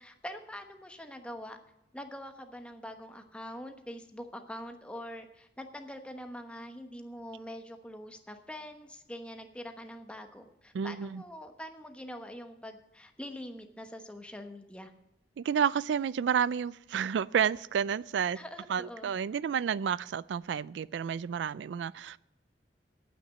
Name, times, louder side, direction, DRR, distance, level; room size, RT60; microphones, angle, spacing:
voice 1, 0.0-1.6 1.9-14.9 18.3-19.1, equal, 5° left, 5 dB, 1.1 m, -44 dB
voice 2, 10.7-11.2 15.4-18.4 18.7-22.2, right 7 dB, 85° right, 19 dB, 0.3 m, -30 dB
9.3 x 8.6 x 8.5 m, 0.85 s
head